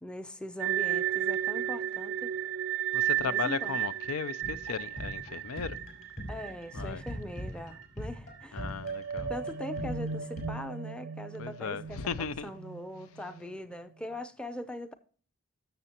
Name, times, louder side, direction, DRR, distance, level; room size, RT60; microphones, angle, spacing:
voice 1, 0.0-2.3 3.2-3.8 6.3-8.6 9.3-14.9, left 1 dB, 5° left, 0.5 m, -41 dB
sound 1, 0.6-7.4 7.7-7.8 8.4-13.7, right 10 dB, 55° right, 0.4 m, -34 dB
voice 2, 2.9-5.8 6.7-7.0 8.5-9.3 11.4-12.5, left 6 dB, 80° left, 0.5 m, -36 dB
sound 2, 4.4-10.5, equal, 40° left, 4.1 m, -41 dB
13.5 x 6.8 x 2.9 m
head